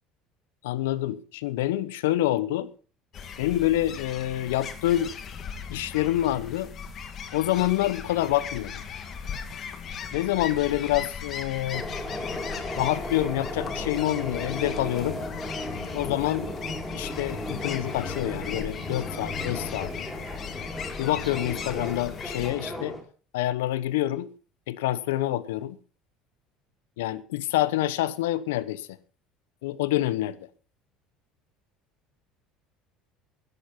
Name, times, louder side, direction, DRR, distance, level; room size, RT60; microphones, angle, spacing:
voice 1, 0.6-2.7 3.4-5.1 5.7-6.7 7.3-8.7 10.1-11.9 12.8-15.2 15.9-16.5 16.9-19.9 21.0-23.0 23.3-24.3 24.7-25.8 27.0-28.9 29.6-30.5, left 14 dB, 85° left, 0.9 m, -27 dB
sound 1, 3.1-22.5, left 7 dB, 50° left, 2.1 m, -38 dB
sound 2, 11.7-23.0, left 1 dB, 15° left, 6.5 m, -35 dB
13.5 x 10.5 x 5.7 m
supercardioid pair, 85°, 0 cm